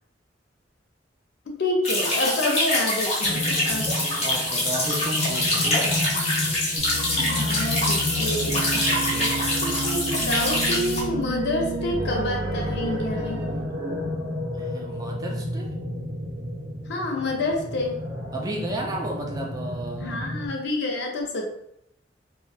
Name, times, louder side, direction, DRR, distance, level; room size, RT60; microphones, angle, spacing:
voice 1, 1.5-3.9 7.2-8.8 9.6-13.4 16.9-18.0 20.0-21.5, left 1 dB, 65° left, 1 dB, 0.5 m, -28 dB
sound 1, 1.8-11.0, left 1 dB, 35° left, 0.8 m, -25 dB
sound 2, 3.2-20.5, left 1 dB, 60° right, 0.8 m, -32 dB
voice 2, 4.2-6.1 8.8-9.5 14.5-15.8 18.3-20.2, right 1 dB, 20° right, 0 dB, 0.3 m, -33 dB
sound 3, 6.8-13.6, right 3 dB, 85° right, 0.4 m, -32 dB
2.5 x 2.1 x 2.2 m, 0.76 s
head